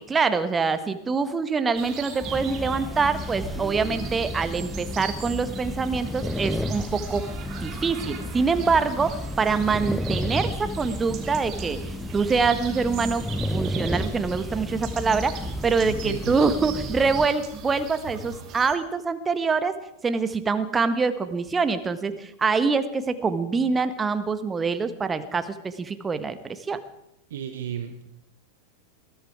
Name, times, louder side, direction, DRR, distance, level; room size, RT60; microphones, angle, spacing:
voice 1, 0.0-7.2 7.6-11.8 12.1-13.2 13.5-19.7 20.0-26.8, right 4 dB, 15° right, 11 dB, 1.3 m, -25 dB
sound 1, 1.8-18.7, right 6 dB, 35° right, 2.4 m, -40 dB
sound 2, 2.2-17.3, left 1 dB, ahead, 0.7 m, -32 dB
voice 2, 15.8-16.4 27.3-28.1, right 9 dB, 60° right, 9 dB, 1.1 m, -33 dB
21.0 x 14.5 x 4.7 m, 0.83 s
figure-of-eight pair, 90°, 0 cm